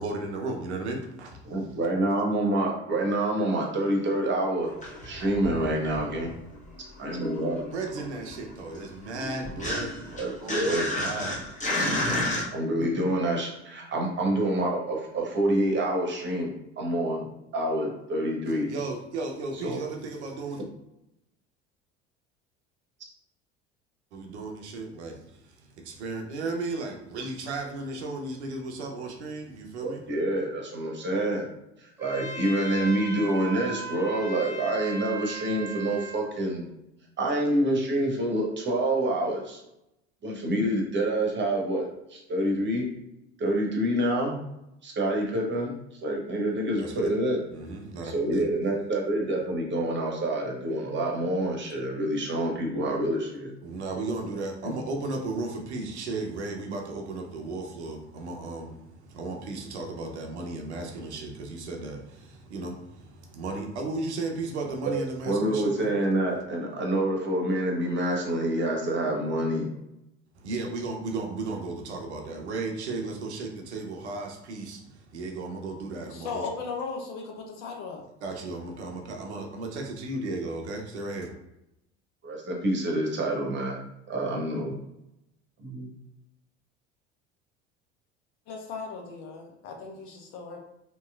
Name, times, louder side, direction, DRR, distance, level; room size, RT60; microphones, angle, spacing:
voice 1, 0.0-1.8 7.7-11.4 18.7-20.6 24.1-30.0 46.8-47.1 47.5-48.4 53.6-65.9 70.4-76.5 78.2-81.3, right 3 dB, 80° right, 2 dB, 0.6 m, -35 dB
voice 2, 1.4-4.7 5.0-6.3 7.0-7.7 10.2-10.9 12.5-16.5 16.8-18.7 19.6-19.8 29.8-31.5 31.8-36.7 37.2-39.6 40.2-42.9 43.4-44.4 44.8-45.7 46.0-47.4 48.0-53.5 54.6-54.8 64.9-69.7 82.3-83.8 84.1-84.7 85.6-85.9, right 1 dB, 35° right, 0 dB, 0.9 m, -27 dB
sound 1, 4.6-6.6 6.8-12.4, left 1 dB, 20° left, 1.0 m, -32 dB
Trumpet, 32.0-36.3, right 2 dB, 10° right, 0.7 m, -38 dB
voice 3, 76.1-78.0 88.5-90.6, left 5 dB, 60° left, 2 dB, 0.8 m, -37 dB
2.9 x 2.9 x 2.3 m, 0.86 s
figure-of-eight pair, 65°, 34 cm